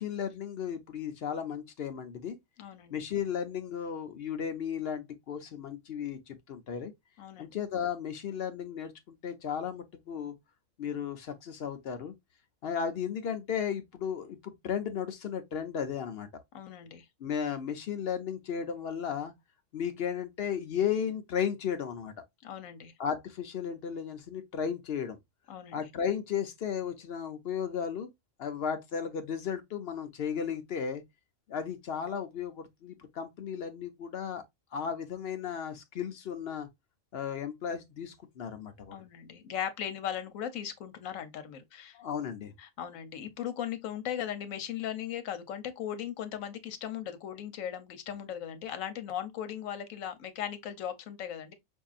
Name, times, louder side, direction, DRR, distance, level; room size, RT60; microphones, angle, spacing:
voice 1, 0.0-2.4 2.9-6.9 7.4-10.4 10.8-12.1 12.6-16.3 17.2-19.3 19.7-22.1 23.0-25.2 25.7-28.1 28.4-31.0 31.5-34.4 34.7-36.7 37.1-39.0 41.9-42.5, left 8 dB, 60° left, 0.7 m, -34 dB
voice 2, 2.6-2.9 7.2-7.5 16.5-17.1 22.4-22.9 25.5-25.8 38.9-42.0 42.6-51.5, left 9 dB, 85° left, 1.1 m, -38 dB
5.3 x 2.7 x 2.4 m
omnidirectional pair, 1.4 m